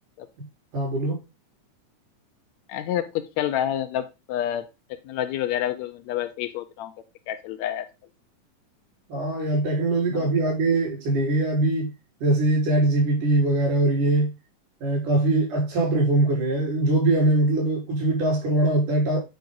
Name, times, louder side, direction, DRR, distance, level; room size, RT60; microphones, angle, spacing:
voice 1, 0.7-1.2 9.1-11.9 12.2-14.3 14.8-19.2, right 2 dB, 80° right, 5.8 m, -22 dB
voice 2, 2.7-6.9 7.3-7.9, left 11 dB, 75° left, 1.7 m, -28 dB
9.2 x 4.8 x 3.8 m
omnidirectional pair, 3.6 m